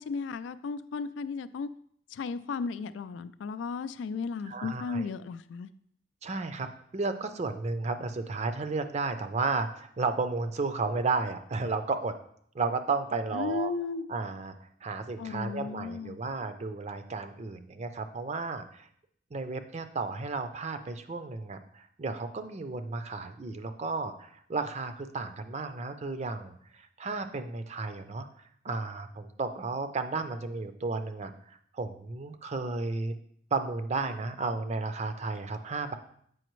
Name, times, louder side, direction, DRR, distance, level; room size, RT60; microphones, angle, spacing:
voice 1, 0.0-1.7 2.1-5.7 13.3-14.1 15.2-16.2, left 4 dB, 90° left, 14 dB, 0.3 m, -35 dB
voice 2, 4.5-5.1 6.2-12.1 12.5-13.7 14.1-14.5 14.8-18.9 19.3-28.3 28.6-33.1 33.5-35.9, right 3 dB, 40° right, 9 dB, 0.5 m, -33 dB
7.8 x 5.0 x 3.1 m, 0.65 s
head